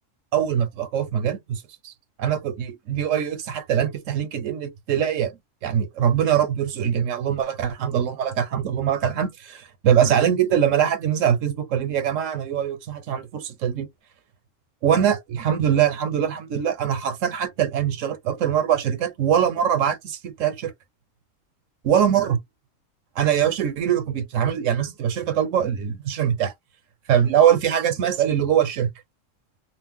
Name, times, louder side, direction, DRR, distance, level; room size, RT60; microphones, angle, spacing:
voice 1, 0.3-1.9 2.2-5.3 5.6-13.9 14.8-20.7 21.8-22.4 23.2-26.5 27.1-28.9, right 9 dB, 85° right, 1.1 m, -22 dB
2.5 x 2.0 x 3.6 m
omnidirectional pair, 1.3 m